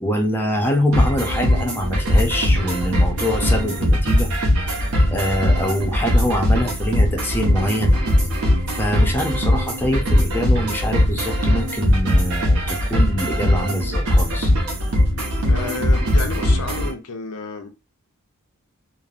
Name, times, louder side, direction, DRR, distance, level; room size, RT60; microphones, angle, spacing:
voice 1, 0.0-4.3 5.1-8.0 8.7-14.5, equal, 10° left, 0.5 m, -24 dB
sound 1, 0.9-16.9, left 1 dB, 75° right, 1.0 m, -20 dB
voice 2, 15.5-17.7, left 4 dB, 90° left, 0.7 m, -31 dB
3.1 x 2.0 x 2.4 m
head